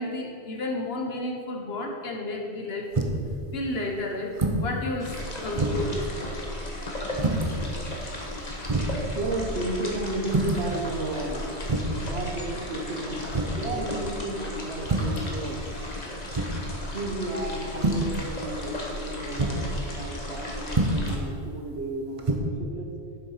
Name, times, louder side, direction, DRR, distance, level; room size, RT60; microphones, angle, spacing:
voice 1, 0.0-2.9 3.5-4.3 4.6-5.1 5.4-6.4, left 1 dB, 60° left, 1 dB, 1.3 m, -32 dB
sound 1, 2.9-3.3 4.3-4.7 5.1-5.2 5.6-6.0 7.1-7.5 8.2-8.3 8.7-9.0 10.3-10.7 11.6-12.0 13.3-13.7 14.8-15.2 16.3-16.7 17.7-18.1 19.3-19.6 20.7-21.1 22.2-22.4, right 2 dB, 30° right, 0.8 m, -26 dB
sound 2, 5.0-21.2, left 1 dB, 40° left, 1.3 m, -35 dB
voice 2, 9.1-15.7 16.9-22.9, right 1 dB, 65° right, 1 dB, 1.4 m, -33 dB
7.3 x 7.0 x 5.6 m, 2.4 s
omnidirectional pair, 1.2 m